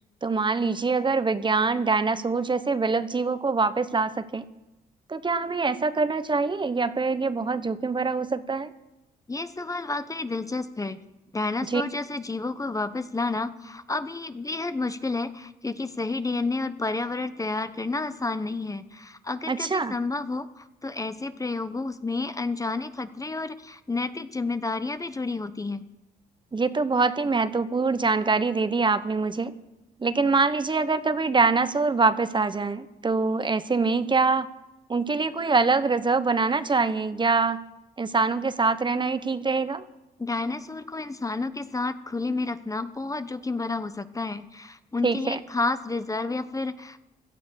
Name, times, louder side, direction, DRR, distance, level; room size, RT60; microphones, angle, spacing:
voice 1, 0.2-4.4 5.1-8.7 11.6-11.8 19.5-19.9 26.5-29.6 30.0-34.5 34.9-37.7 38.0-39.8 45.0-45.4, right 4 dB, 30° right, 13 dB, 1.1 m, -24 dB
voice 2, 9.3-11.0 11.3-25.9 40.2-47.0, left 3 dB, 20° left, 12 dB, 1.0 m, -30 dB
17.0 x 13.0 x 6.5 m, 0.98 s
cardioid pair, 70°, 17 cm